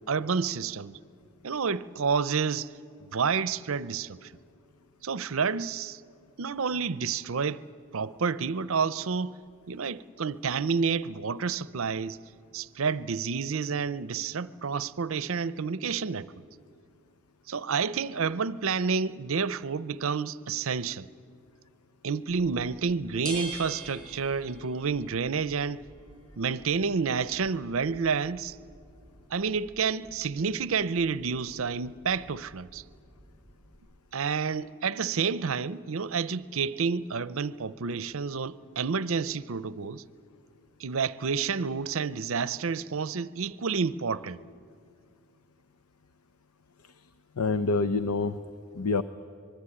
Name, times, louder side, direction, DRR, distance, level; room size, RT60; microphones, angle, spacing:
voice 1, 0.1-1.0 1.4-2.7 3.1-4.3 5.0-6.0 6.4-7.6 7.9-9.3 9.7-12.2 12.5-16.4 17.5-21.1 22.0-25.8 26.4-28.6 29.3-32.8 34.1-40.0 40.8-44.4, right 5 dB, 65° right, 0.6 m, -29 dB
sound 1, 22.3-33.8, right 1 dB, 20° left, 6.3 m, -47 dB
voice 2, 47.4-48.4 48.7-49.0, left 3 dB, 85° left, 0.7 m, -27 dB
25.0 x 21.5 x 9.9 m
head